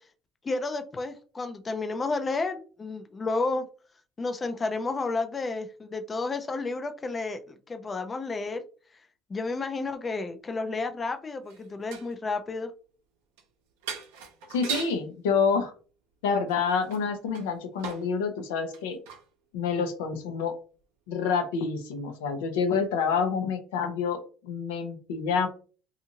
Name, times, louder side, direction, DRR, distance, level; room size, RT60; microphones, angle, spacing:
voice 1, 0.4-3.6 4.2-8.6 9.3-12.7, left 3 dB, 30° left, 8 dB, 0.4 m, -31 dB
sound 1, 11.4-12.2 13.4-13.5 13.8-15.0 16.5-18.1 18.5-19.3 19.9-20.0, right 7 dB, 85° right, 0.6 m, -39 dB
voice 2, 14.5-15.7 16.2-19.0 19.5-20.5 21.1-25.5, left 5 dB, 85° left, 7 dB, 0.5 m, -28 dB
2.7 x 2.4 x 2.8 m, 0.39 s
supercardioid pair, 80°, 0 cm